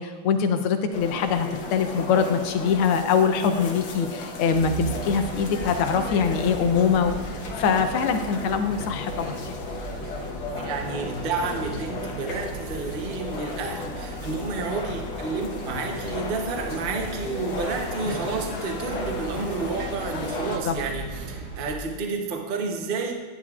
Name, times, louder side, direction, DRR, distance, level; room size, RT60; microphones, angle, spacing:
voice 1, 0.0-9.3 20.6-20.8, left 6 dB, 85° left, 7 dB, 1.6 m, -23 dB
sound 1, 0.9-20.6, left 3 dB, 65° left, 1.6 m, -35 dB
sound 2, 4.5-21.7, right 4 dB, 75° right, 1.9 m, -38 dB
voice 2, 10.6-23.1, right 4 dB, 55° right, 2 dB, 0.5 m, -30 dB
11.0 x 9.7 x 2.4 m, 1.3 s
omnidirectional pair, 2.3 m